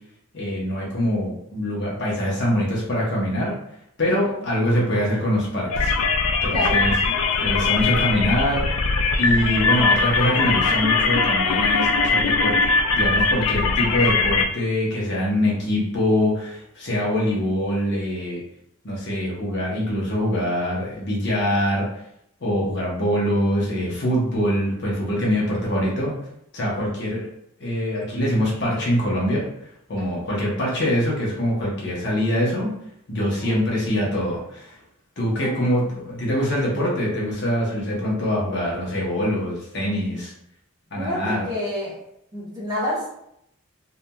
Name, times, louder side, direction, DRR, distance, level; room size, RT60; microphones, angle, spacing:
voice 1, 0.3-3.5 4.0-5.9 6.4-6.9 7.4-8.7 9.2-18.4 18.8-21.9 22.4-26.1 26.5-27.2 27.6-29.4 29.9-32.7 33.1-34.7 35.2-40.3 40.9-41.5, equal, 55° left, -4 dB, 0.8 m, -24 dB
voice 2, 4.1-4.5 6.5-6.8 9.3-9.7 26.6-27.1 30.0-30.3 33.2-33.6 35.4-35.5 36.3-36.4 40.1-40.2 41.0-42.0 42.3-43.1, left 1 dB, 20° right, -7 dB, 0.9 m, -30 dB
sound 1, 5.7-14.5, left 4 dB, 85° left, 0.3 m, -21 dB
2.8 x 2.4 x 2.2 m, 0.76 s
head